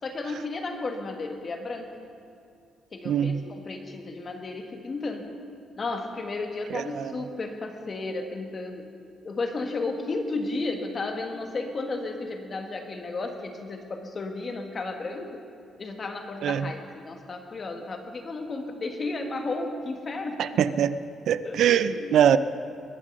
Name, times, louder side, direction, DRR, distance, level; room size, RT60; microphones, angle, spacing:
voice 1, 0.0-1.9 2.9-5.3 5.8-8.9 9.2-15.4 15.8-20.4 21.4-22.2, left 3 dB, 30° left, 4 dB, 1.4 m, -33 dB
voice 2, 3.0-3.4 6.7-7.1 16.4-16.7 20.4-21.0 21.3-22.4, right 9 dB, 70° right, 14 dB, 0.4 m, -23 dB
21.5 x 7.4 x 6.4 m, 2.4 s
cardioid pair, 155°, 0 cm